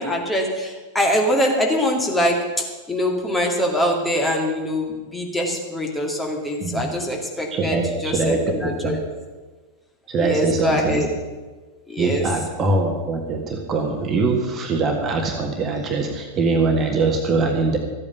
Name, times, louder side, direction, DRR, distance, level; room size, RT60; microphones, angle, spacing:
voice 1, 0.0-9.0 10.2-11.1 11.9-12.2, equal, 10° left, 0 dB, 2.4 m, -23 dB
voice 2, 7.5-8.9 10.1-11.0 12.0-17.8, right 3 dB, 25° right, 2 dB, 1.8 m, -22 dB
14.0 x 8.7 x 6.9 m, 1.3 s
figure-of-eight pair, 90°, 0 cm